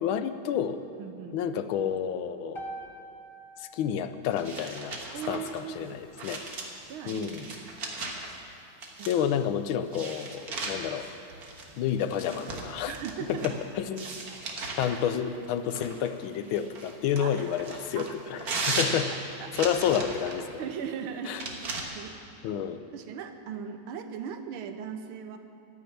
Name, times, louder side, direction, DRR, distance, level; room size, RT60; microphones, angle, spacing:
voice 1, 0.0-0.8 1.3-2.6 3.6-5.0 5.3-6.4 7.1-7.5 8.0-8.1 9.1-11.0 11.8-12.9 13.3-14.1 14.8-19.1 19.5-20.5 21.3-21.4 22.4-22.8, left 8 dB, 80° left, 11 dB, 1.5 m, -30 dB
voice 2, 1.0-1.4 5.1-5.9 6.9-7.7 9.0-9.1 9.6-9.7 12.9-13.4 14.0-14.4 17.2-17.4 18.0-18.1 19.4-19.5 20.6-21.3 22.0-22.2 22.9-25.4, right 7 dB, 80° right, 8 dB, 1.7 m, -38 dB
sound 1, 2.5-6.7, right 1 dB, 45° left, 0.3 m, -47 dB
sound 2, 4.3-8.4 8.8-9.4 9.9-13.6 14.0-15.0 15.7-20.4 21.2-21.8, right 3 dB, 50° right, 1.8 m, -37 dB
14.5 x 6.8 x 9.9 m, 2.6 s
omnidirectional pair, 2.2 m